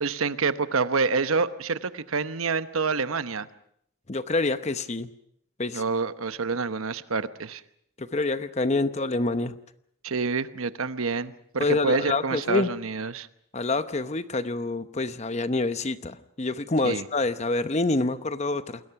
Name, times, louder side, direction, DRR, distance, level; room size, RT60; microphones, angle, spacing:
voice 1, 0.0-3.5 5.7-7.6 10.0-13.3 16.8-17.1, right 4 dB, 85° right, 12 dB, 1.0 m, -27 dB
voice 2, 4.1-5.1 5.6-5.8 8.0-9.5 11.6-12.7 13.5-18.8, left 2 dB, 30° left, 12 dB, 0.9 m, -27 dB
28.5 x 21.0 x 5.9 m, 0.69 s
head